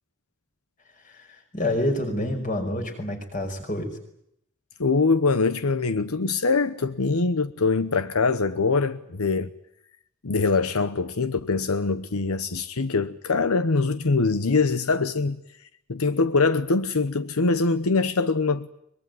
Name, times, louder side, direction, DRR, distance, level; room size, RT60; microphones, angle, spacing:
voice 1, 1.0-3.9, left 1 dB, 35° left, 5.4 m, -28 dB
voice 2, 4.8-9.5 10.2-15.4 15.9-18.7, left 4 dB, 90° left, 1.0 m, -23 dB
23.0 x 21.5 x 9.4 m
head